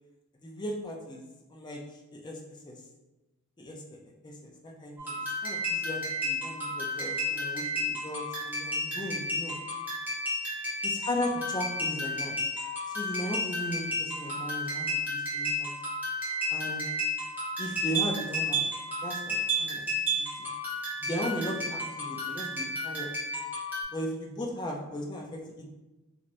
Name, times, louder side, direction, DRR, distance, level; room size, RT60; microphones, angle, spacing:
voice 1, 0.3-1.2 1.5-1.8 2.1-2.8 3.6-4.0 4.2-9.5 10.8-12.3 12.9-15.8 16.5-16.8 17.6-18.7 19.0-19.9 20.2-20.5 21.0-23.1 23.9-25.7, equal, 20° left, 0 dB, 0.4 m, -37 dB
sound 1, 5.0-23.8, equal, 10° right, 0.8 m, -32 dB
3.1 x 2.8 x 2.5 m, 1.1 s
head